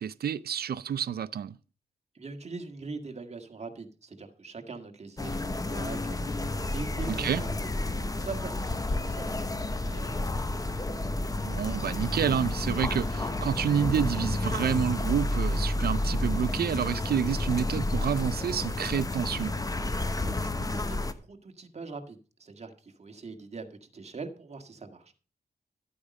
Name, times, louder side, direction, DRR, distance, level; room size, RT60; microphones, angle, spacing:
voice 1, 0.0-1.6 7.1-7.4 11.4-19.5, right 8 dB, 75° right, 0.5 m, -29 dB
voice 2, 2.1-10.9 20.2-25.1, right 4 dB, 40° right, 1.8 m, -43 dB
sound 1, 5.2-21.1, left 2 dB, 20° left, 1.0 m, -30 dB
12.0 x 8.6 x 5.3 m
cardioid pair, 80°, 16 cm